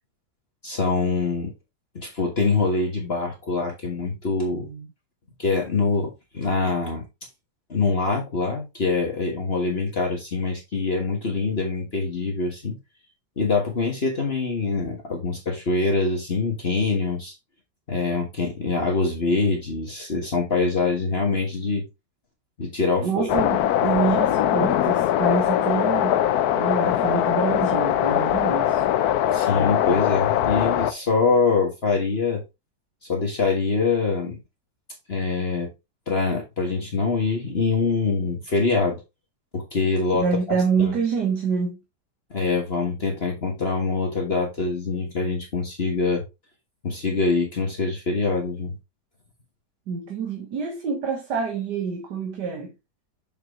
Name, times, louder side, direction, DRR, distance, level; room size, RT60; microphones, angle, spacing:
voice 1, 0.6-1.5 2.0-4.7 5.4-7.0 7.7-12.8 13.4-17.3 17.9-21.9 22.6-23.3 29.3-32.4 33.1-34.4 35.1-35.7 36.1-39.0 39.5-40.3 40.8-40.9 42.3-46.2 46.8-48.8, left 4 dB, 40° left, 1.6 m, -24 dB
voice 2, 4.5-4.9 23.0-26.2 26.5-28.8 40.1-41.8 49.9-52.7, right 5 dB, 80° right, 1.9 m, -26 dB
sound 1, 23.3-30.9, left 11 dB, 70° left, 1.1 m, -21 dB
6.9 x 5.8 x 3.1 m
omnidirectional pair, 1.8 m